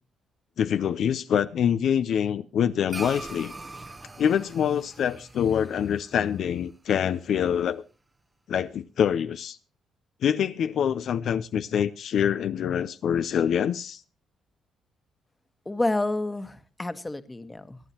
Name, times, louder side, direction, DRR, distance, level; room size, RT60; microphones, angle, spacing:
voice 1, 0.6-3.5 4.2-7.8 8.5-9.6 10.2-14.0, left 8 dB, 65° left, 0.5 m, -25 dB
sound 1, 2.9-7.5, right 3 dB, 20° right, 0.9 m, -42 dB
voice 2, 15.6-17.8, left 2 dB, 15° left, 1.3 m, -29 dB
23.5 x 9.7 x 2.9 m
cardioid pair, 90°, 0 cm